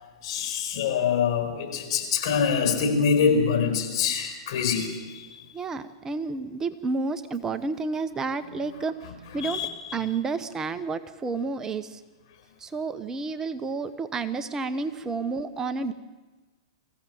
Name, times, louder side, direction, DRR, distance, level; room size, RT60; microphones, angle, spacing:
voice 1, 0.2-4.9 5.2-5.3 9.4-9.7 14.7-15.2, left 6 dB, 60° left, 5 dB, 4.8 m, -25 dB
voice 2, 5.5-8.9 9.3-9.6 9.9-12.0 12.6-15.9, right 4 dB, 20° right, 11 dB, 0.9 m, -30 dB
23.0 x 16.0 x 7.8 m, 1.3 s
hypercardioid pair, 120°, 3 cm